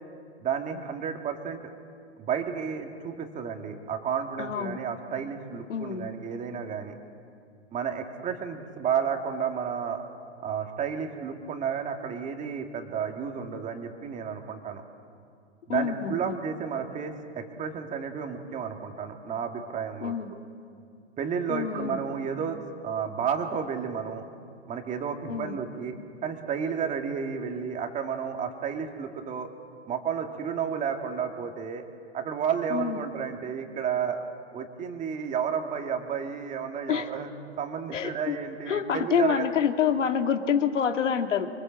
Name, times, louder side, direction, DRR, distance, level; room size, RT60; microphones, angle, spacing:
voice 1, 0.4-1.6 2.2-6.9 7.7-10.0 10.4-14.8 15.7-20.1 21.2-24.3 24.7-26.0 26.2-29.5 29.9-31.8 32.1-34.2 34.5-37.3 37.6-39.5, right 7 dB, 20° right, 4 dB, 2.2 m, -32 dB
voice 2, 4.4-4.8 5.7-6.1 15.7-16.4 20.0-20.3 21.5-22.0 25.3-25.6 32.7-33.0 36.9-37.1 37.9-38.4 38.7-41.5, left 8 dB, 80° left, 6 dB, 2.1 m, -27 dB
26.0 x 24.0 x 7.6 m, 2.3 s
hypercardioid pair, 140°, 37 cm